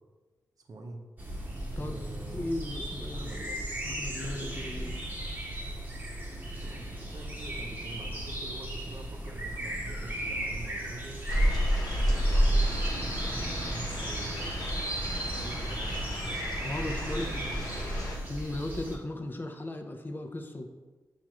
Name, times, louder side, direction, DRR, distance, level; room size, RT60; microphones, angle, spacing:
voice 1, 0.7-1.0 1.7-2.5 3.1-3.6 6.6-11.3 12.1-13.4 13.7-14.4 15.2-16.4 17.0-18.0, right 2 dB, 60° right, 2 dB, 0.6 m, -45 dB
sound 1, 1.2-19.0, right 1 dB, 25° right, 1.0 m, -36 dB
voice 2, 2.2-3.6 3.9-5.0 16.6-17.5 18.3-20.7, left 1 dB, 30° left, 5 dB, 0.5 m, -37 dB
sound 2, 11.3-18.2, equal, 65° left, 0.9 m, -30 dB
6.0 x 2.4 x 2.9 m, 1.3 s
cardioid pair, 50°, 7 cm